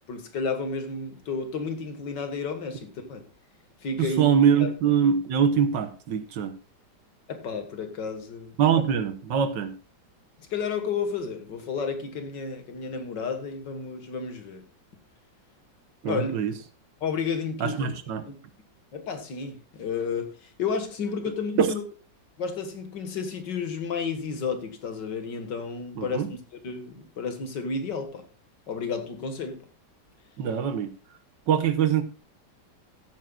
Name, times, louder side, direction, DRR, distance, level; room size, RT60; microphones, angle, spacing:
voice 1, 0.1-3.2 3.8-4.2 4.6-4.7 7.3-8.6 10.4-14.6 16.0-16.5 17.0-17.9 18.3-18.4 18.9-21.8 22.4-26.2 26.6-28.2 28.7-29.6, left 5 dB, 75° left, 2.2 m, -32 dB
voice 2, 4.0-6.5 8.6-9.7 16.0-16.5 17.6-18.2 21.6-21.7 26.0-26.3 30.4-30.9 31.5-32.0, right 8 dB, 75° right, 1.8 m, -23 dB
15.0 x 9.1 x 2.4 m
omnidirectional pair, 2.0 m